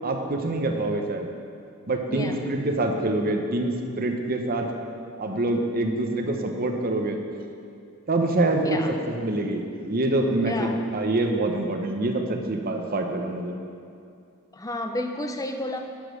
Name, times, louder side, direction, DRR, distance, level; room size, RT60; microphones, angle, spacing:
voice 1, 0.0-1.3 1.9-4.7 5.2-7.2 8.1-8.8 9.1-13.5, right 2 dB, 40° right, 3 dB, 0.8 m, -25 dB
voice 2, 2.1-2.4 8.6-9.0 10.4-10.8 14.5-15.8, left 1 dB, 15° left, 4 dB, 0.6 m, -31 dB
10.5 x 5.2 x 6.2 m, 2.4 s
head